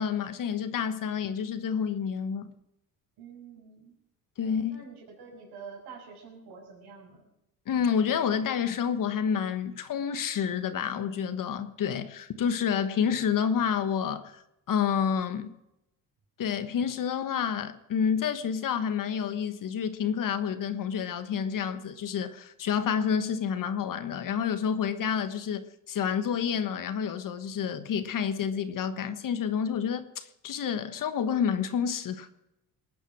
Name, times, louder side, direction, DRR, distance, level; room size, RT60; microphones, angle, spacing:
voice 1, 0.0-2.5 4.4-4.8 7.7-14.4 14.7-15.5 16.4-32.3, left 7 dB, 55° left, 1.3 m, -29 dB
voice 2, 3.2-4.0 4.7-7.3, right 5 dB, 75° right, 6.1 m, -47 dB
20.0 x 9.3 x 6.0 m
supercardioid pair, 85°, 39 cm